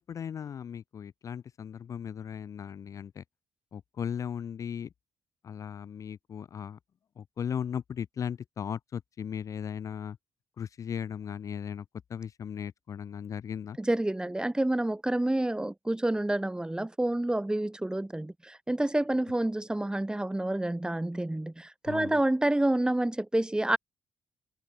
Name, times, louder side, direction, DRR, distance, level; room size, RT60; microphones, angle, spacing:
voice 1, 0.0-3.2 3.7-4.9 5.4-6.8 7.2-10.2 10.6-11.8 12.1-13.8 21.9-22.2, left 8 dB, 50° left, 0.3 m, -37 dB
voice 2, 13.8-23.8, right 1 dB, 10° right, 1.2 m, -28 dB
supercardioid pair, 60°, 7 cm